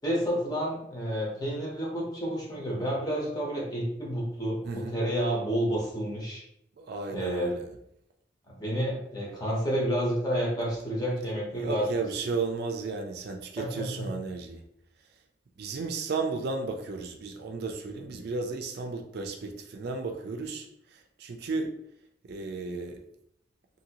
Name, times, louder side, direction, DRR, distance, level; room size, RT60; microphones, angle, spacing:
voice 1, 0.0-6.4 7.1-7.6 8.5-11.9 13.6-14.1, equal, 20° left, -4 dB, 0.9 m, -30 dB
voice 2, 4.6-4.9 6.8-7.6 11.6-14.6 15.6-20.7 21.2-21.7 22.3-23.0, right 4 dB, 60° right, 3 dB, 0.4 m, -33 dB
2.7 x 2.6 x 2.8 m, 0.77 s
head